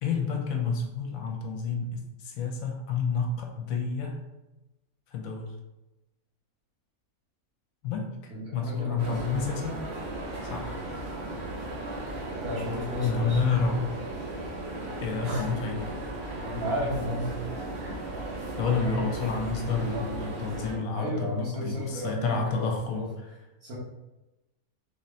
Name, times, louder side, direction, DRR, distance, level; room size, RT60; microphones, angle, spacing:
voice 1, 0.0-4.2 5.1-5.5 7.8-9.8 10.4-10.8 13.0-13.9 15.0-16.0 18.6-23.3, left 4 dB, 70° left, 2 dB, 1.0 m, -30 dB
voice 2, 8.3-9.2 12.4-13.4 15.2-15.5 16.4-17.3 17.8-18.0 21.0-23.1 23.6-23.7, equal, 70° right, -9 dB, 1.5 m, -33 dB
sound 1, 9.0-20.8, right 2 dB, 50° right, 0.9 m, -36 dB
3.5 x 2.7 x 3.1 m, 0.99 s
omnidirectional pair, 1.6 m